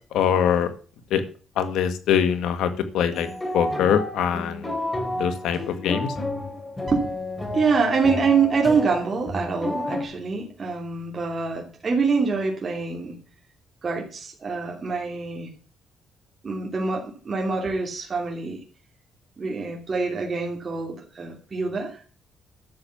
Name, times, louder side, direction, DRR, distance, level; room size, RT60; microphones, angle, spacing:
voice 1, 0.1-0.7 1.1-1.2 1.6-3.3 3.5-4.8 5.2-6.1, left 8 dB, 85° left, 10 dB, 1.8 m, -23 dB
sound 1, 3.1-10.0, left 1 dB, 20° left, 5.0 m, -31 dB
voice 2, 7.5-13.2 13.8-15.5 16.4-18.6 19.4-22.0, right 4 dB, 35° right, 0 dB, 2.9 m, -25 dB
11.5 x 7.2 x 7.2 m, 0.38 s
cardioid pair, 90°, 0 cm